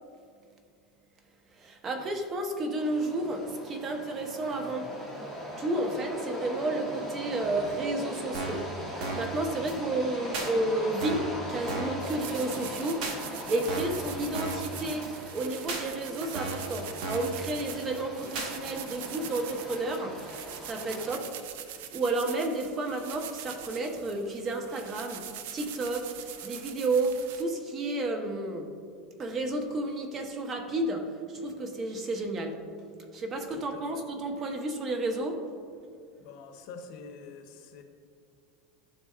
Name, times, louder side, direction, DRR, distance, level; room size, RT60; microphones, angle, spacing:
voice 1, 1.5-5.0 5.6-21.4 21.6-28.8 29.2-32.7 33.1-35.5, right 2 dB, 30° right, 0.9 m, -32 dB
sound 1, 2.8-21.2, equal, 10° right, 1.1 m, -40 dB
sound 2, 8.3-8.7 9.0-9.3 9.7-9.8 10.3-10.5 11.0-11.3 11.7-12.0 12.3-12.4 13.0-13.2 13.7-14.0 14.3-14.7 15.0-15.1 15.7-15.9 16.4-16.7 17.0-17.3 17.7-17.8 18.4-18.5, right 3 dB, 55° right, 1.3 m, -35 dB
sound 3, 12.0-27.4, right 9 dB, 70° right, 0.5 m, -43 dB
voice 2, 33.6-34.0 36.2-37.8, left 5 dB, 60° left, 0.9 m, -46 dB
12.0 x 4.1 x 2.4 m
supercardioid pair, 120°, 0 cm